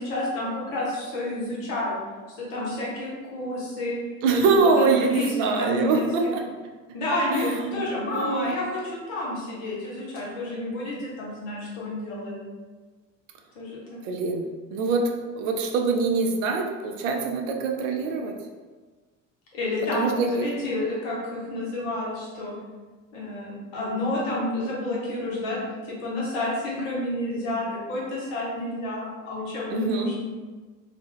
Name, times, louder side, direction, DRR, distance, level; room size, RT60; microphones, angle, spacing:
voice 1, 0.0-1.9 2.3-4.0 4.3-6.0 6.9-12.3 13.5-14.0 19.5-20.1 20.4-22.5 23.1-25.6 25.8-30.3, left 1 dB, 70° left, -5 dB, 1.2 m, -30 dB
voice 2, 4.2-6.5 7.3-7.8 8.1-8.6 14.0-18.4 19.9-20.5 29.7-30.2, right 4 dB, 65° right, 3 dB, 0.6 m, -24 dB
2.8 x 2.1 x 3.4 m, 1.4 s
hypercardioid pair, 65°, 40 cm